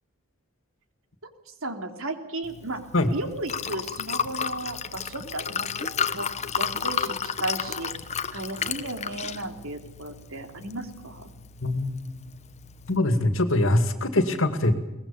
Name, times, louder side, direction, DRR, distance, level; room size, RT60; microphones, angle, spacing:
voice 1, 1.6-2.8 3.1-5.9 6.1-6.3 6.6-7.9 8.3-11.3, right 2 dB, 75° right, 6 dB, 3.2 m, -34 dB
Liquid, 2.4-13.0, left 7 dB, 30° left, 1.0 m, -33 dB
voice 2, 11.6-12.0 12.9-14.9, left 1 dB, 65° left, 9 dB, 2.2 m, -23 dB
23.0 x 19.5 x 7.0 m, 1.0 s
head